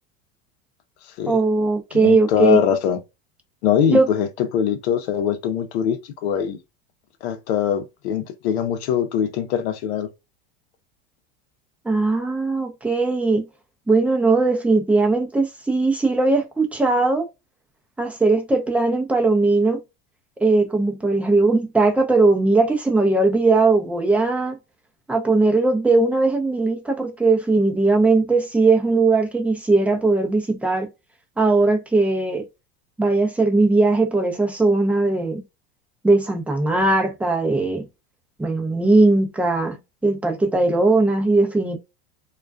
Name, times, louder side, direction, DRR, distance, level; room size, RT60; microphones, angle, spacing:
voice 1, 1.3-2.7 3.9-4.1 11.8-13.4 13.9-17.3 18.0-19.8 20.4-24.6 25.1-30.9 31.4-32.4 33.0-35.4 36.0-37.8 38.4-41.8, right 3 dB, 5° right, 0.5 m, -19 dB
voice 2, 1.9-3.0 3.6-4.3 4.5-6.6 7.2-10.1, left 9 dB, 80° left, 0.7 m, -22 dB
2.3 x 2.3 x 2.3 m
supercardioid pair, 115°, 32 cm